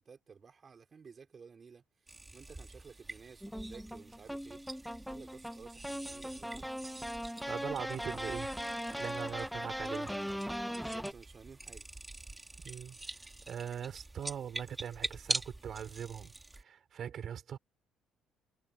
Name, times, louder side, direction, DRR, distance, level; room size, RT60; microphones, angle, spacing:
voice 1, 0.0-1.8 2.3-4.6 5.1-6.7 8.9-9.5 10.7-11.9, right 5 dB, 40° right, 4.9 m, -54 dB
sound 1, 2.1-16.6, right 2 dB, 15° right, 2.8 m, -45 dB
sound 2, 3.4-11.1, equal, ahead, 1.1 m, -39 dB
voice 2, 7.5-8.5 8.9-10.1 12.6-13.0 13.5-17.6, right 8 dB, 55° right, 4.7 m, -41 dB
supercardioid pair, 70°, 0 cm